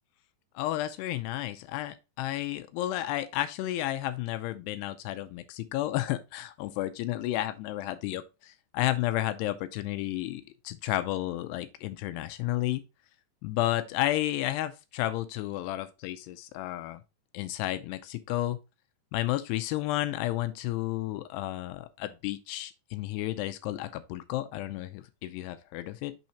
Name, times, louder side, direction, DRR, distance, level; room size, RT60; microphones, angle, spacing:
voice 1, 0.6-12.8 13.4-17.0 17.3-18.6 19.1-26.2, left 15 dB, 85° left, 2.6 m, -32 dB
6.4 x 6.0 x 2.8 m
omnidirectional pair, 4.8 m